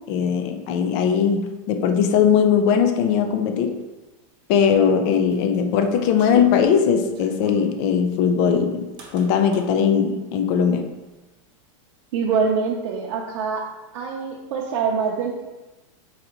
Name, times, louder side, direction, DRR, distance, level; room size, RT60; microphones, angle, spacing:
voice 1, 0.1-3.8 4.5-10.9, left 7 dB, 35° left, 6 dB, 0.4 m, -20 dB
sound 1, 4.7-7.7 9.0-9.7, right 5 dB, 25° right, 0.8 m, -39 dB
voice 2, 12.1-13.7 13.9-15.4, right 5 dB, 60° right, -1 dB, 0.6 m, -24 dB
3.9 x 2.7 x 4.4 m, 1.1 s
supercardioid pair, 160°, 17 cm